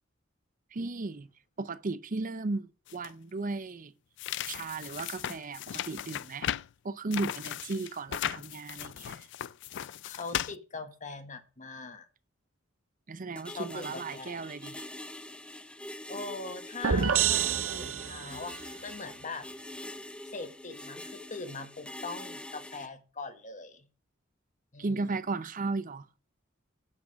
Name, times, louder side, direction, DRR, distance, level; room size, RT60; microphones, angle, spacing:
voice 1, 0.7-1.3 1.6-3.9 4.5-6.5 6.8-9.3 13.1-14.8 24.8-26.1, right 3 dB, 45° right, 0.6 m, -35 dB
sound 1, 2.9-3.1 4.2-6.7 7.1-10.6, left 11 dB, 65° left, 0.4 m, -36 dB
voice 2, 10.0-12.1 13.5-14.4 16.1-19.5 20.3-23.9 24.7-25.1, left 3 dB, 40° left, 1.5 m, -41 dB
sound 2, 13.4-22.9, left 1 dB, 5° left, 0.6 m, -44 dB
sound 3, 16.8-18.5, right 7 dB, 85° right, 0.6 m, -27 dB
10.0 x 6.0 x 6.2 m
head